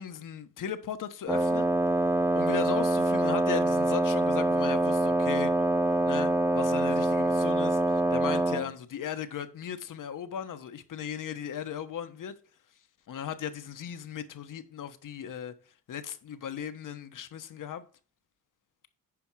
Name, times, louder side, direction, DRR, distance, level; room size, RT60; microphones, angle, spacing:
voice 1, 0.0-1.7 2.3-5.5 6.1-12.3 13.1-15.5 15.9-17.8, left 8 dB, 60° left, 1.1 m, -37 dB
Wind instrument woodwind instrument, 1.3-8.7, right 2 dB, 5° right, 0.8 m, -25 dB
9.7 x 5.2 x 4.7 m
cardioid pair, 65°, 36 cm